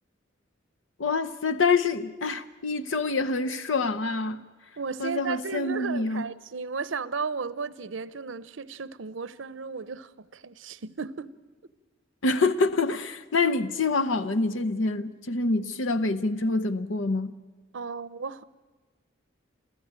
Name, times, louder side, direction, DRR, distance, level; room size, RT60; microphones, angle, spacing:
voice 1, 1.0-4.4 5.0-6.2 12.2-17.3, left 3 dB, 85° left, 0.8 m, -26 dB
voice 2, 4.8-11.3 17.7-18.4, right 4 dB, 85° right, 0.7 m, -34 dB
27.5 x 15.0 x 8.9 m
head